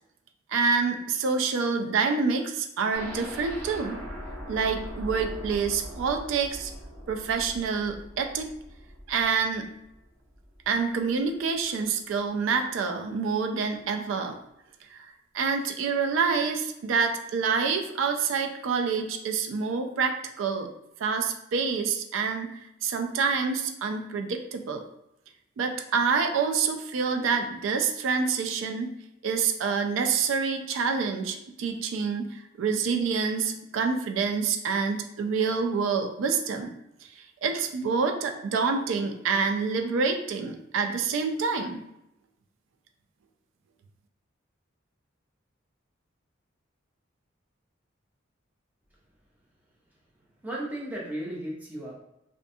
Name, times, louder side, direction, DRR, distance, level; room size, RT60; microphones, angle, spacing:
voice 1, 0.5-4.0 4.5-6.7 7.1-8.5 9.1-9.7 10.7-14.4 14.9-20.7 21.0-22.5 22.8-24.8 25.6-28.9 29.2-36.7 37.2-41.8, right 5 dB, 75° right, 5 dB, 0.3 m, -27 dB
sound 1, 2.9-10.8 11.1-11.2 11.6-11.7, equal, 40° right, 0.7 m, -41 dB
voice 2, 49.9-51.9, right 1 dB, 10° right, -5 dB, 0.5 m, -36 dB
2.4 x 2.2 x 2.6 m, 0.85 s
head